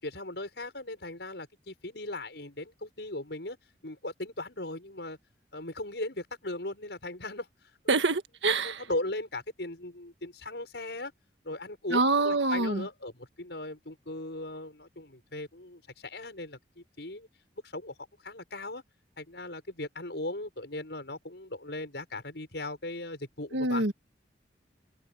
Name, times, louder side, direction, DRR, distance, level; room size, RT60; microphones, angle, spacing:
voice 1, 0.0-3.6 3.8-5.2 5.5-7.5 7.8-8.0 8.6-11.1 11.4-17.3 17.6-17.9 18.2-18.8 19.2-23.8, left 2 dB, 70° left, 6.2 m, -38 dB
voice 2, 7.9-8.8 11.9-12.8 23.5-23.9, right 3 dB, 85° right, 1.7 m, -26 dB
head